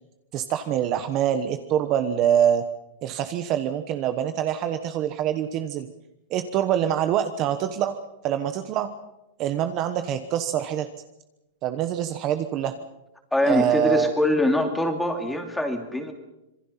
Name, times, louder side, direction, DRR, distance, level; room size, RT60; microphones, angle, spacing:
voice 1, 0.3-2.6 3.0-5.9 6.3-8.0 8.2-8.9 9.4-10.9 11.6-12.7 13.4-14.2, right 10 dB, 30° right, 8 dB, 1.2 m, -25 dB
voice 2, 13.3-16.1, left 1 dB, 5° left, 4 dB, 2.6 m, -23 dB
26.5 x 23.0 x 5.8 m, 0.92 s
supercardioid pair, 165°, 0 cm